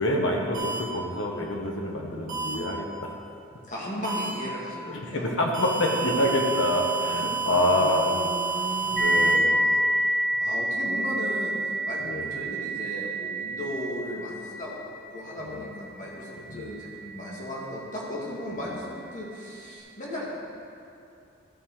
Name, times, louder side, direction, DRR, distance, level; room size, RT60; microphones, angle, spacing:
voice 1, 0.0-3.1 4.9-8.2 8.8-9.6 12.0-12.3 15.4-15.7 16.5-16.7, left 1 dB, 65° left, 0 dB, 1.4 m, -27 dB
sound 1, 0.5-0.8 2.3-2.5 4.0-4.3 5.5-9.3, right 4 dB, 40° right, 1.9 m, -30 dB
voice 2, 3.7-5.3 7.3-9.3 10.0-12.0 12.3-20.4, equal, 40° left, -5 dB, 2.1 m, -36 dB
sound 2, 9.0-18.2, right 1 dB, ahead, 1.5 m, -29 dB
13.5 x 6.6 x 3.9 m, 2.6 s
head